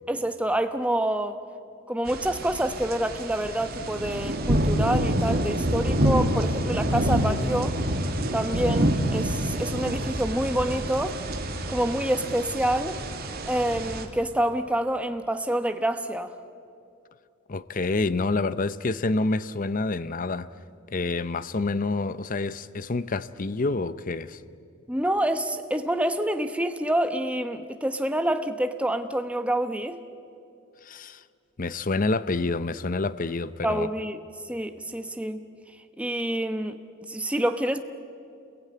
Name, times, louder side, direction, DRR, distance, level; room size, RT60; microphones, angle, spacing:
voice 1, 0.1-1.4 1.9-7.8 8.3-11.2 11.7-13.0 13.4-16.3 24.9-30.0 33.6-35.4 36.0-37.8, right 1 dB, 5° right, 1.0 m, -27 dB
sound 1, 2.1-14.0, right 1 dB, 45° right, 2.1 m, -27 dB
sound 2, 3.3-14.0, equal, 75° left, 2.9 m, -45 dB
voice 2, 17.5-20.5 20.9-24.4 30.8-31.2 31.6-33.9, left 3 dB, 40° left, 0.6 m, -28 dB
28.0 x 21.5 x 9.5 m
head